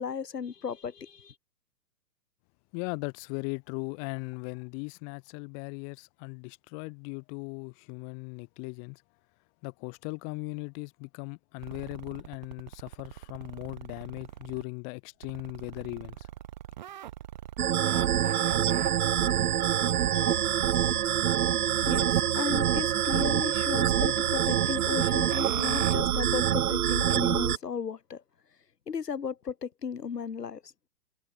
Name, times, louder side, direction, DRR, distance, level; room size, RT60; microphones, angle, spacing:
voice 1, 0.0-1.3 21.8-28.2 28.9-30.7, left 6 dB, 70° left, 3.1 m, -35 dB
voice 2, 2.7-9.0 9.6-16.3, left 40 dB or more, 20° left, 0.8 m, -38 dB
sound 1, 11.6-14.6 15.2-22.3 22.8-26.0, right 12 dB, 30° right, 0.6 m, -42 dB
sound 2, 17.6-27.6, right 10 dB, 65° right, 0.8 m, -26 dB
figure-of-eight pair, 125°, 50 cm